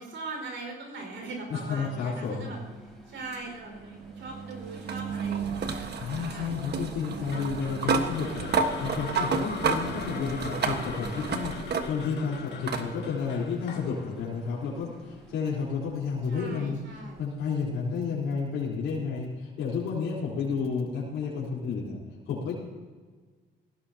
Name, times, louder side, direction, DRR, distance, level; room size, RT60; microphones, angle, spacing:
voice 1, 0.0-2.6 2.8-6.7 16.3-17.3, right 3 dB, 70° right, 1 dB, 5.1 m, -41 dB
Mechanical fan, 1.0-15.9, equal, ahead, 4.2 m, -55 dB
voice 2, 1.5-2.5 6.0-16.8 17.2-22.0 22.3-22.5, left 5 dB, 85° left, -7 dB, 4.0 m, -31 dB
sound 1, 3.3-12.2 12.7-12.9 14.2-14.3 17.2-17.3, right 5 dB, 55° right, 1.4 m, -31 dB
sound 2, 7.3-15.5, left 5 dB, 60° left, 1.9 m, -41 dB
19.5 x 16.0 x 2.9 m, 1.4 s
cardioid pair, 90°, 20 cm